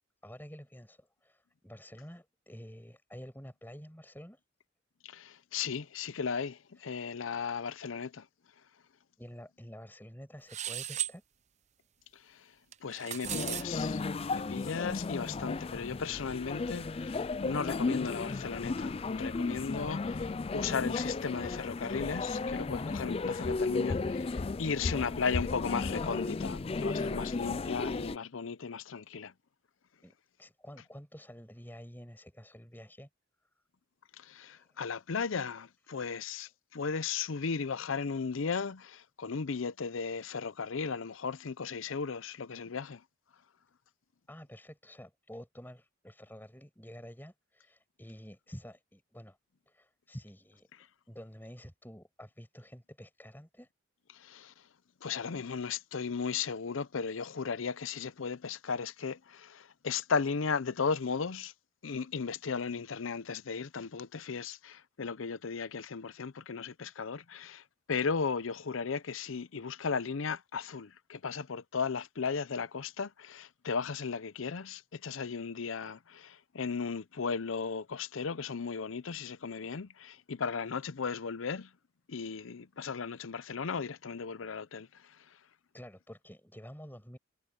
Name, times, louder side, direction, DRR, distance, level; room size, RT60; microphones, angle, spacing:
voice 1, 0.2-4.4 6.8-7.0 9.2-11.2 24.9-25.0 30.0-30.1 30.4-33.1 33.4-33.6 34.4-34.7 44.3-49.4 49.7-50.7 51.1-53.7 85.7-87.2, equal, 10° left, 7.2 m, -49 dB
voice 2, 5.0-8.3 12.1-12.5 12.8-14.0 14.3-29.3 34.2-43.0 54.1-54.5 55.0-61.5 61.8-67.6 67.9-81.7 82.1-85.2, left 5 dB, 80° left, 0.6 m, -36 dB
sound 1, 10.5-11.1 12.7-13.6, right 12 dB, 35° right, 0.5 m, -36 dB
sound 2, 13.2-28.2, left 3 dB, 30° left, 0.4 m, -34 dB
head